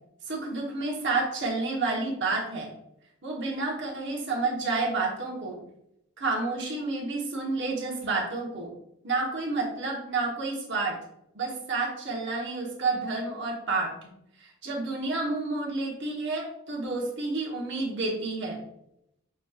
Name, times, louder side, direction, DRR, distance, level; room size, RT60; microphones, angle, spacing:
voice 1, 0.3-2.7 3.2-5.6 6.2-8.7 9.0-11.0 11.3-13.9 14.4-18.6, right 3 dB, 55° right, -1 dB, 1.1 m, -30 dB
5.9 x 3.0 x 2.4 m, 0.78 s
head